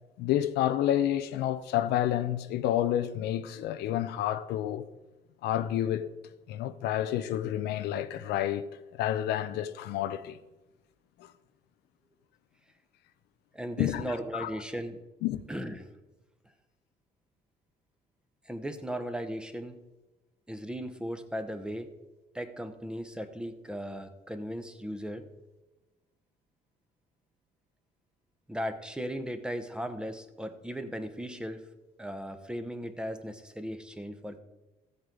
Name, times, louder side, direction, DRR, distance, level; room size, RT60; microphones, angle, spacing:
voice 1, 0.2-4.9 5.4-6.1 6.5-8.6 8.9-10.4 11.2-11.3 13.8-14.0 14.3-14.5 15.2-15.4, left 12 dB, 80° left, 0.6 m, -29 dB
voice 2, 13.5-15.0 15.5-15.9 18.5-19.8 20.5-21.9 22.3-25.2 28.5-31.6 32.0-34.4, equal, 5° right, 1.0 m, -37 dB
14.5 x 8.1 x 3.8 m
cardioid pair, 110°, 17 cm